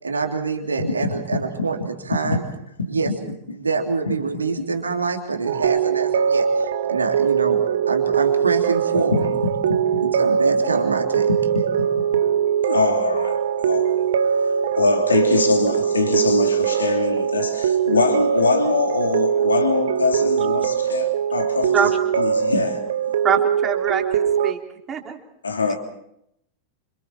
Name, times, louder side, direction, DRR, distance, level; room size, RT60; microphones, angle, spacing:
voice 1, 0.0-2.4 2.9-3.1 3.6-9.2 10.0-11.3, right 4 dB, 75° right, 3.3 m, -25 dB
sound 1, 5.4-24.5, right 8 dB, 60° right, 1.3 m, -21 dB
voice 2, 12.6-14.1 14.7-21.9 22.1-22.8 25.4-25.8, left 4 dB, 75° left, 3.5 m, -23 dB
voice 3, 23.2-24.6 24.9-25.2, right 7 dB, 25° right, 3.4 m, -23 dB
29.5 x 27.0 x 4.4 m
figure-of-eight pair, 90°, 0 cm